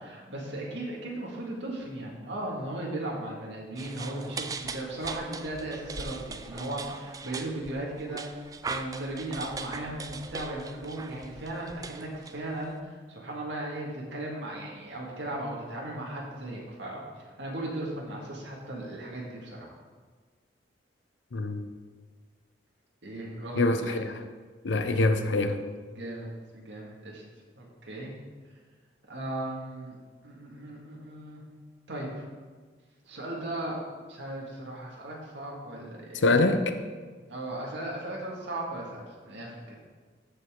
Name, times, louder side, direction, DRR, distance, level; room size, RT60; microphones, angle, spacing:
voice 1, 0.0-19.7 23.0-24.0 24.7-25.1 25.9-27.2 27.6-28.1 29.1-30.0 30.2-31.4 31.9-32.3 33.0-33.8 34.1-36.2 37.3-39.8, right 1 dB, 80° right, -3 dB, 2.0 m, -37 dB
sound 1, 3.7-12.8, right 4 dB, 20° right, 0.3 m, -40 dB
voice 2, 21.3-21.7 23.6-24.1 24.6-25.6 36.1-36.8, left 2 dB, 85° left, 8 dB, 0.6 m, -25 dB
14.0 x 5.5 x 3.7 m, 1.5 s
head